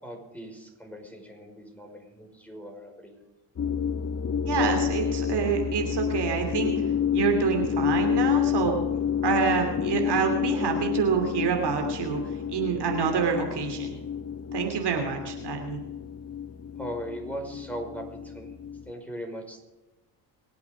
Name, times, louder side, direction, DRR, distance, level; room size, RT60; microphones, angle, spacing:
voice 1, 0.0-3.2 16.8-18.5 18.9-19.6, equal, 5° left, 2 dB, 5.2 m, -39 dB
sound 1, 3.6-18.9, left 8 dB, 30° left, 0.8 m, -29 dB
voice 2, 4.4-6.7 7.1-8.8 9.2-12.2 12.5-14.0 14.5-15.8, right 7 dB, 50° right, 3 dB, 2.9 m, -27 dB
24.0 x 8.5 x 5.0 m, 1.1 s
hypercardioid pair, 60°, 50 cm